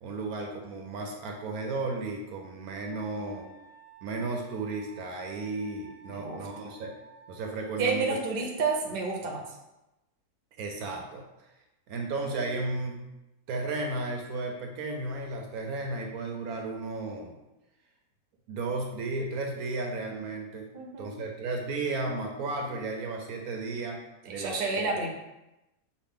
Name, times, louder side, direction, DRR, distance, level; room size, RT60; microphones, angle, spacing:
voice 1, 0.0-3.5 4.0-6.9 7.3-8.1 10.6-11.2 11.9-13.1 13.5-17.4 18.5-20.7 21.0-24.6, right 3 dB, 70° right, 2 dB, 1.0 m, -34 dB
Wind instrument woodwind instrument, 2.9-7.9, right 5 dB, 45° left, 0.5 m, -53 dB
voice 2, 6.1-6.5 7.8-9.5 20.7-21.1 24.3-25.1, right 4 dB, 50° right, 0 dB, 0.7 m, -30 dB
6.3 x 2.3 x 3.6 m, 0.96 s
omnidirectional pair, 1.7 m